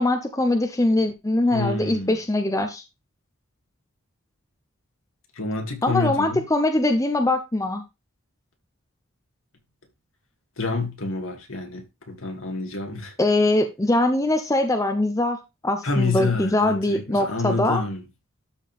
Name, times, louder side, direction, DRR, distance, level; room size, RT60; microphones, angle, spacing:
voice 1, 0.0-2.8 5.8-7.8 13.2-17.8, left 2 dB, 15° left, 0.7 m, -22 dB
voice 2, 1.5-2.2 5.4-6.4 10.6-13.1 15.8-18.0, left 3 dB, 65° left, 2.5 m, -28 dB
12.5 x 4.6 x 3.5 m
head